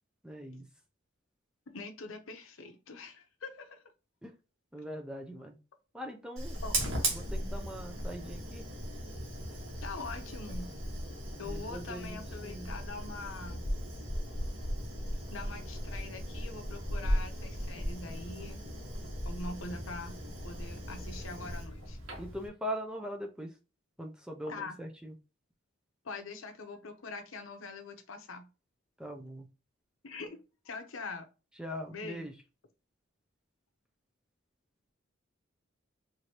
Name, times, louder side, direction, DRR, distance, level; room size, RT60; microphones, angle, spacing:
voice 1, 0.2-0.6 4.2-4.3 4.7-5.6 5.9-6.6 7.1-8.6 11.4-12.7 22.2-23.5 24.0-25.1 29.0-29.5 31.6-32.3, equal, 5° right, 0.5 m, -41 dB
voice 2, 1.7-3.9 6.6-6.8 9.8-10.7 11.4-13.6 15.3-18.6 19.2-20.2 20.4-22.0 24.5-24.8 26.0-28.5 30.0-31.3 31.9-32.3, left 3 dB, 75° left, 0.8 m, -43 dB
Fire, 6.4-22.5, right 1 dB, 90° right, 1.6 m, -37 dB
4.7 x 2.7 x 2.9 m
head